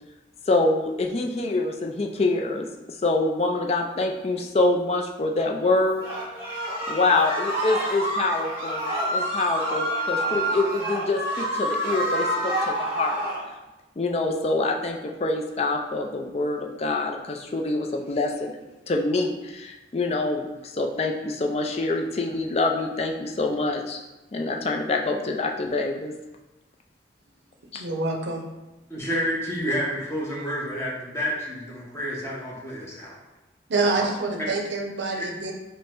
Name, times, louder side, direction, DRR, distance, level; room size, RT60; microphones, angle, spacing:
voice 1, 0.5-6.0 6.9-8.8 9.1-13.2 14.0-18.6 18.9-24.0 24.3-26.1 27.7-27.9, left 2 dB, 35° left, 2 dB, 0.4 m, -25 dB
sound 1, 6.0-13.4, right 1 dB, 10° right, 1.1 m, -28 dB
voice 2, 27.7-28.4 33.7-35.5, right 3 dB, 75° right, 2 dB, 0.6 m, -26 dB
voice 3, 28.9-33.2 34.4-34.5, equal, 15° left, -5 dB, 0.8 m, -29 dB
5.1 x 2.1 x 3.6 m, 1.0 s
head